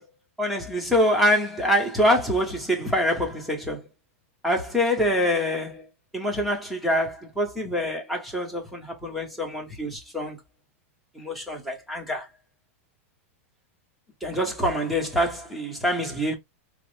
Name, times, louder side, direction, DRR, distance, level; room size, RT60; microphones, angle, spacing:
voice 1, 0.4-3.8 4.4-5.8 6.1-10.4 11.1-12.3 14.2-16.3, equal, ahead, 1.0 m, -25 dB
4.9 x 2.1 x 3.2 m
supercardioid pair, 160°, 7 cm